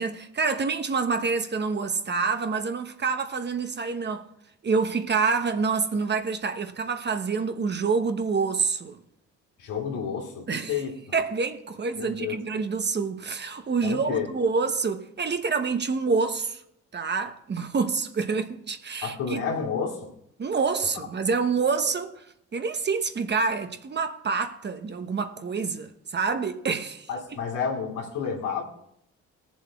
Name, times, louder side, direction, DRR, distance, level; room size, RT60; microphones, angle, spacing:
voice 1, 0.0-4.3 4.6-9.0 10.5-10.7 11.1-16.6 16.9-19.4 20.4-22.3 22.5-27.1, right 5 dB, 35° right, 1.1 m, -27 dB
voice 2, 9.6-10.9 12.0-12.4 13.8-14.3 19.0-20.1 27.1-28.6, left 6 dB, 90° left, 2.7 m, -30 dB
19.5 x 7.3 x 3.6 m
cardioid pair, 90°, 30 cm